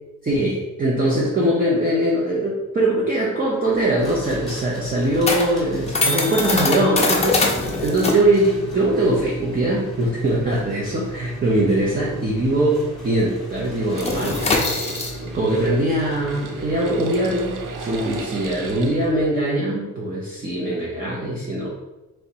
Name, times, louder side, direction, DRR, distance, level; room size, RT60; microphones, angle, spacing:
voice 1, 0.2-7.5 7.8-14.4 15.2-21.7, right 1 dB, 25° right, -4 dB, 0.6 m, -21 dB
sound 1, 3.7-12.7 12.9-13.2 13.5-19.2, left 3 dB, 20° left, 0.6 m, -25 dB
sound 2, 4.0-18.7, right 2 dB, ahead, 1.0 m, -37 dB
sound 3, 13.9-19.1, right 5 dB, 70° right, 0.6 m, -36 dB
3.1 x 2.8 x 4.5 m, 1.0 s
cardioid pair, 140°, 33 cm